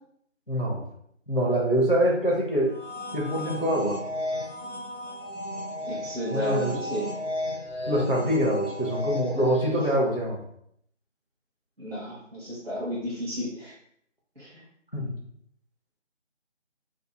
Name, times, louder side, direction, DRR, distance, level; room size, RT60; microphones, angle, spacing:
voice 1, 0.5-0.8 1.3-2.7 3.1-4.0 6.3-6.8 7.9-10.4 14.9-15.1, equal, 45° left, -3 dB, 0.5 m, -25 dB
sound 1, 2.6-10.0, left 1 dB, 70° left, 0.9 m, -34 dB
voice 2, 5.8-7.1 9.7-9.8 11.8-13.7 14.4-14.6, equal, 55° right, -8 dB, 0.7 m, -33 dB
2.6 x 2.3 x 2.6 m, 0.68 s
figure-of-eight pair, 180°, 37 cm